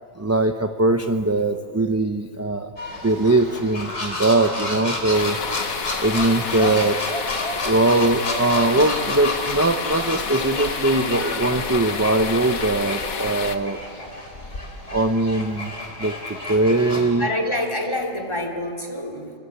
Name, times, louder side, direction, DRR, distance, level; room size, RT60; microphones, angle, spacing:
voice 1, 0.2-2.7 3.0-5.4 6.0-7.0 7.6-13.8 14.9-15.7 16.0-17.3, right 2 dB, 15° right, 6 dB, 0.6 m, -21 dB
sound 1, 2.8-17.1, left 2 dB, 55° left, 4.3 m, -31 dB
sound 2, 5.1-13.6, left 6 dB, 80° left, 1.6 m, -30 dB
voice 2, 16.9-19.3, left 1 dB, 20° left, 4 dB, 3.2 m, -27 dB
29.0 x 24.5 x 8.4 m, 2.4 s
omnidirectional pair, 1.4 m